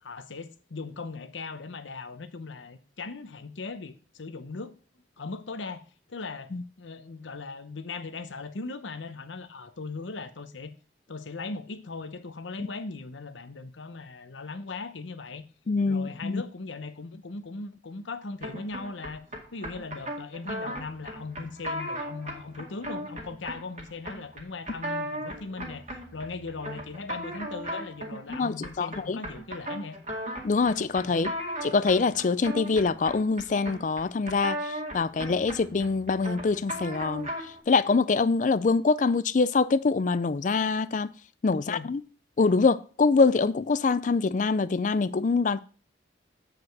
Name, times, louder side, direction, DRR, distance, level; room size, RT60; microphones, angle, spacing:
voice 1, 0.0-4.7 5.2-6.5 6.8-10.7 11.1-15.5 15.9-19.3 19.5-25.9 26.1-30.0 31.0-31.3 41.5-41.9, left 3 dB, 90° left, 0.8 m, -39 dB
voice 2, 15.7-16.4 28.3-29.2 30.4-31.3 31.6-37.3 37.7-41.1 41.4-42.0 42.4-45.6, left 4 dB, 45° left, 0.4 m, -24 dB
sound 1, 18.4-37.6, equal, 40° right, 2.1 m, -37 dB
8.6 x 4.9 x 4.6 m
head